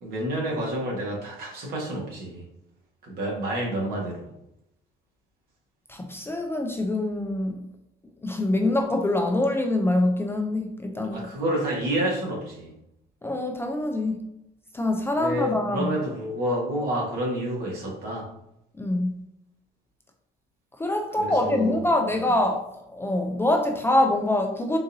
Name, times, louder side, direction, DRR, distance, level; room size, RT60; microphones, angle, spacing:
voice 1, 0.0-2.4 3.0-4.3 11.1-12.7 15.1-18.3 21.2-21.8, right 1 dB, 65° right, -3 dB, 1.4 m, -29 dB
voice 2, 5.9-7.6 8.2-11.2 13.2-14.2 14.7-15.9 18.8-19.1 20.8-24.8, left 1 dB, 15° left, 3 dB, 0.4 m, -25 dB
3.9 x 2.5 x 2.6 m, 0.81 s
cardioid pair, 110°, 17 cm